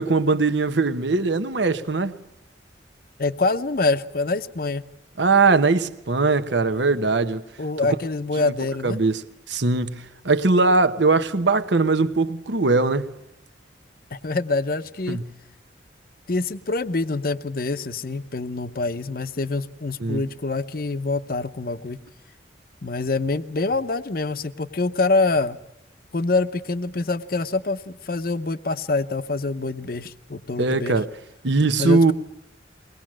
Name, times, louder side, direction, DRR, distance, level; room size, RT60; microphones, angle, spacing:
voice 1, 0.0-2.1 5.2-7.4 8.4-8.5 8.8-9.2 9.5-13.1 15.1-15.2 20.0-20.2 30.6-31.1 31.4-32.1, right 3 dB, 75° right, 1.1 m, -20 dB
voice 2, 3.2-4.8 7.6-9.0 14.1-15.2 16.3-22.0 22.8-25.6 26.1-31.0 31.8-32.1, left 3 dB, 50° left, 0.7 m, -25 dB
22.0 x 20.0 x 7.5 m
head